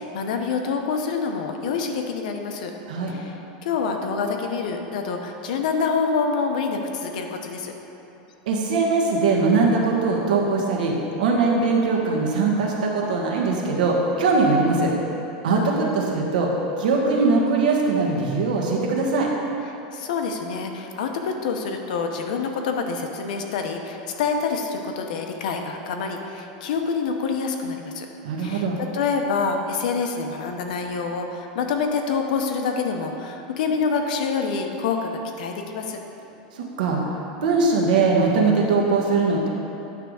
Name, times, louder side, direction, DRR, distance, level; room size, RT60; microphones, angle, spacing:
voice 1, 0.0-2.7 3.1-7.7 19.7-28.1 28.4-35.1 35.4-36.0, left 5 dB, 70° left, 4 dB, 0.8 m, -26 dB
voice 2, 8.5-14.9 15.4-16.5 16.8-19.3 28.2-28.8 36.5-37.0 37.4-39.5, right 3 dB, 85° right, -1 dB, 1.4 m, -21 dB
9.6 x 3.4 x 6.3 m, 2.9 s
supercardioid pair, 165°, 4 cm